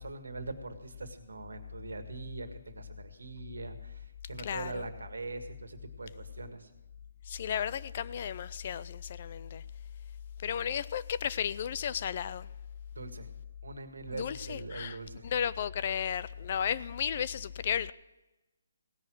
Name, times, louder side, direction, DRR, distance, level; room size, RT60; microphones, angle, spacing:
voice 1, 0.0-6.7 12.9-13.3 13.6-15.3, right 3 dB, 85° right, 1.7 m, -42 dB
voice 2, 4.4-4.8 7.3-9.6 10.4-12.5 14.1-15.0 15.2-17.9, left 8 dB, 40° left, 0.4 m, -34 dB
17.5 x 6.3 x 7.5 m
hypercardioid pair, 160°, 0 cm